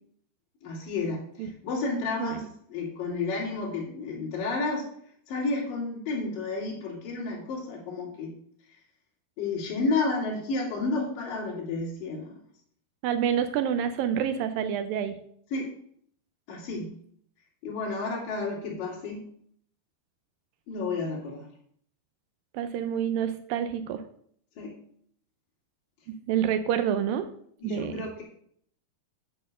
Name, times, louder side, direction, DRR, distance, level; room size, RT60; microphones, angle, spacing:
voice 1, 0.6-4.9 5.3-8.3 9.4-12.3 15.5-15.7 16.5-16.9 17.6-19.2 20.7-21.5 24.6-24.7 27.6-28.2, left 3 dB, 60° left, -4 dB, 4.2 m, -31 dB
voice 2, 13.0-15.2 22.5-24.0 26.1-27.3 27.6-28.0, right 9 dB, 80° right, 10 dB, 2.1 m, -28 dB
8.7 x 4.6 x 7.5 m, 0.64 s
omnidirectional pair, 4.5 m